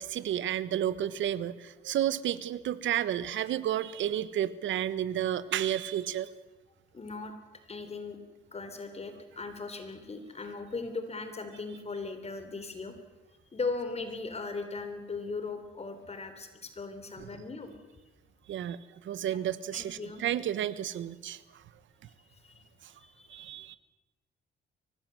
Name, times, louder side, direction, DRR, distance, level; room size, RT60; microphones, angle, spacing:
voice 1, 0.0-6.3 17.2-17.3 18.5-21.4 23.3-23.8, right 11 dB, 70° right, 16 dB, 1.2 m, -31 dB
voice 2, 6.9-7.3 7.7-8.2 8.5-12.9 13.5-17.7 19.2-19.4 19.7-20.2 22.4-22.7 23.0-23.5, left 3 dB, 30° left, 8 dB, 3.5 m, -38 dB
24.5 x 19.0 x 7.7 m, 1.1 s
cardioid pair, 90°, 20 cm